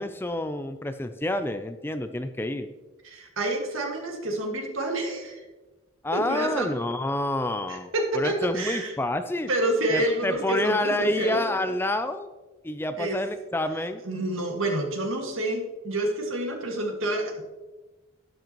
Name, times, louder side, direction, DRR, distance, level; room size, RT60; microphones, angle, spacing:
voice 1, 0.0-2.7 6.0-9.5 9.9-12.3 12.6-14.0, left 1 dB, 10° left, 9 dB, 0.4 m, -28 dB
voice 2, 3.0-5.4 6.1-6.7 7.7-8.9 9.5-11.4 13.0-13.2 14.0-17.4, right 1 dB, 90° right, 2 dB, 2.0 m, -28 dB
12.0 x 10.5 x 3.0 m, 1.2 s
head